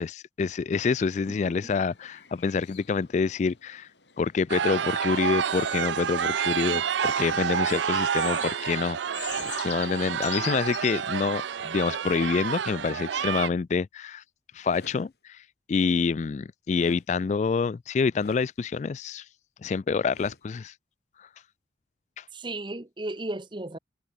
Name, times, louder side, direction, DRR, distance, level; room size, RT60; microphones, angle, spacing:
voice 1, 0.0-3.9 4.2-14.2 14.5-19.3 19.6-20.7 21.2-21.3 22.2-22.3, left 5 dB, 40° left, 0.3 m, -27 dB
sound 1, 1.4-12.6, left 13 dB, 75° left, 6.0 m, -45 dB
sound 2, 4.5-13.5, right 7 dB, 80° right, 0.5 m, -29 dB
sound 3, 7.2-7.6 9.2-9.6 12.0-12.4 14.6-15.0 16.7-17.1 18.1-18.5 20.1-20.5, left 1 dB, 60° left, 4.2 m, -47 dB
voice 2, 22.3-23.8, right 2 dB, 25° right, 1.0 m, -35 dB
head